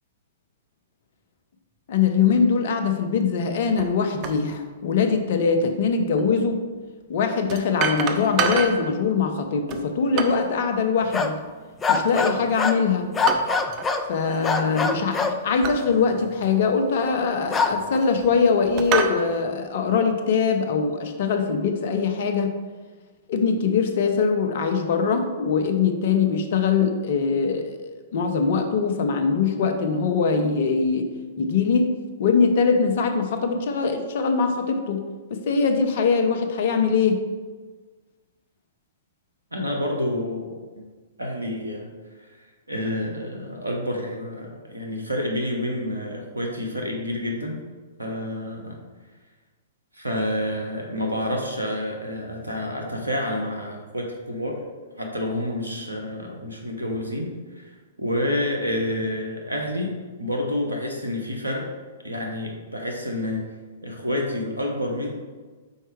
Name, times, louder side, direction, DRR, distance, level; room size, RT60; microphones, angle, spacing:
voice 1, 1.9-6.6 7.1-11.4 11.9-13.1 14.1-22.5 23.3-27.8 28.1-31.1 31.4-31.9 32.2-35.0 35.3-37.2, left 5 dB, 55° left, 6 dB, 0.8 m, -22 dB
sound 1, 3.8-3.9 4.2-4.4 6.2-6.3 7.5-8.9 9.7-10.5 12.1-12.5 13.3-13.9 14.2-14.4 15.6-15.8 16.4-16.5 17.5-18.3 18.8-19.2, right 6 dB, 35° right, 0.6 m, -27 dB
sound 2, 11.0-11.4 11.8-12.8 13.1-14.1 14.4-15.4 17.5-17.8, left 4 dB, 15° left, 0.4 m, -23 dB
voice 2, 39.5-40.8 41.2-41.9 42.3-42.4 42.7-47.6 48.0-48.8 49.9-54.6 55.0-57.3 57.6-57.7 58.0-61.7 62.0-63.4 63.8-65.1, left 1 dB, 90° right, 1 dB, 1.2 m, -28 dB
5.6 x 4.5 x 4.6 m, 1.4 s
figure-of-eight pair, 110°, 0 cm